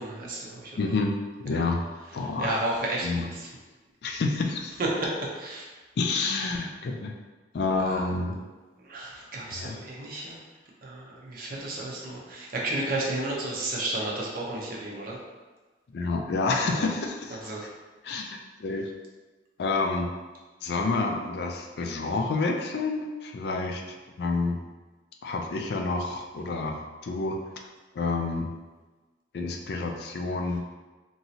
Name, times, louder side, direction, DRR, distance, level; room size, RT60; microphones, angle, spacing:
voice 1, 0.0-0.8 2.4-3.5 4.8-5.7 7.9-8.0 8.8-10.4 10.8-15.2 16.6-16.9 17.3-17.7, right 2 dB, 55° right, -3 dB, 0.6 m, -32 dB
voice 2, 0.8-1.8 2.1-2.5 3.0-3.3 4.0-4.8 6.0-7.2 7.5-8.4 9.5-9.8 15.9-17.4 18.0-18.9 19.6-20.1 20.6-23.8 24.2-24.6 25.2-27.4 27.9-28.5 29.3-30.6, left 3 dB, 65° left, 2 dB, 0.4 m, -29 dB
3.0 x 2.6 x 2.7 m, 1.2 s
head